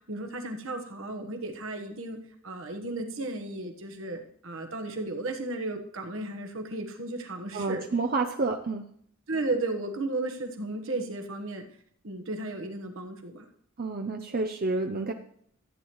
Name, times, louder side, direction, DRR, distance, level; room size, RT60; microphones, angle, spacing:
voice 1, 0.1-2.2 2.4-7.8 8.4-8.5 9.3-11.6 12.0-13.5, right 2 dB, 65° right, 4 dB, 1.3 m, -34 dB
voice 2, 7.5-8.8 13.8-15.1, right 3 dB, 45° right, 4 dB, 0.6 m, -29 dB
14.0 x 8.9 x 3.1 m, 0.65 s
head